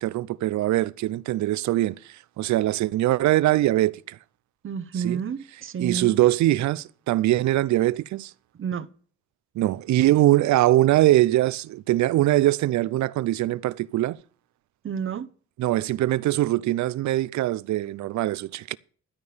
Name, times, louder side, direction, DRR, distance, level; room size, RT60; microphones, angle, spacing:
voice 1, 0.0-4.2 5.0-5.2 5.8-8.3 9.6-14.2 15.6-18.8, right 15 dB, 70° right, 0.6 m, -22 dB
voice 2, 4.6-6.2 8.5-8.9 14.8-15.3, right 7 dB, 45° right, 0.9 m, -30 dB
13.0 x 5.4 x 8.5 m
cardioid pair, 90°, 30 cm